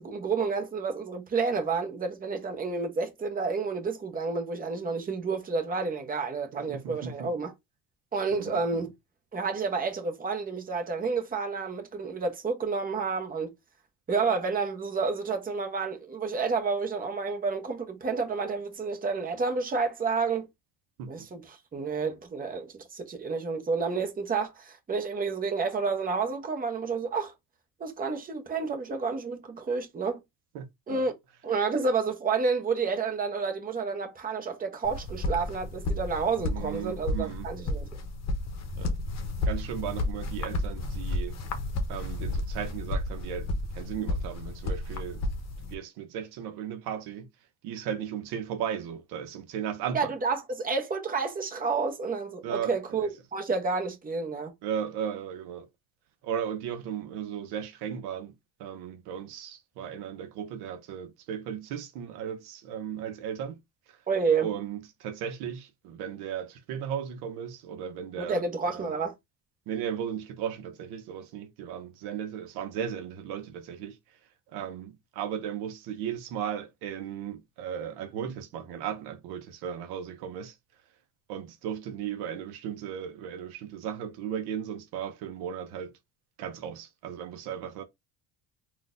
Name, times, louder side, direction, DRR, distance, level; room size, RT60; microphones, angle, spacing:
voice 1, 0.0-7.5 8.1-8.9 9.3-13.5 14.1-20.5 21.1-27.3 27.8-30.2 30.9-31.1 31.4-37.9 49.9-54.5 64.1-64.5 68.2-69.1, right 4 dB, 20° right, 0.9 m, -30 dB
voice 2, 6.5-7.3 8.3-8.8 21.0-21.3 30.5-31.1 36.5-37.5 38.8-39.0 39.4-41.4 41.9-43.5 43.7-45.2 45.6-47.3 47.6-50.1 52.4-52.7 53.0-53.1 54.6-55.7 56.2-58.3 58.6-63.6 63.9-64.0 64.4-69.1 69.7-74.0 74.5-80.6 81.3-85.9 86.4-87.8, right 9 dB, 75° right, 0.7 m, -36 dB
sound 1, 34.8-45.7, left 2 dB, 45° left, 0.8 m, -32 dB
3.8 x 2.4 x 2.5 m
cardioid pair, 100°, 39 cm